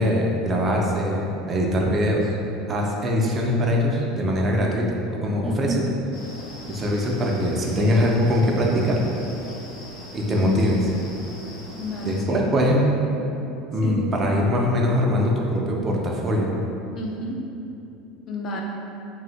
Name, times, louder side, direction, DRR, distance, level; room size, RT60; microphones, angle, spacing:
voice 1, 0.0-2.3 2.7-5.8 6.7-9.0 10.1-10.9 12.0-12.8 13.7-16.5, left 1 dB, 25° right, -2 dB, 0.4 m, -22 dB
voice 2, 5.4-5.8 11.8-12.7 13.8-14.2 16.9-17.4 18.3-18.6, right 1 dB, 40° left, -1 dB, 0.4 m, -31 dB
sound 1, 6.1-12.2, equal, 90° left, 0.8 m, -41 dB
2.6 x 2.1 x 3.8 m, 2.9 s
supercardioid pair, 130°, 0 cm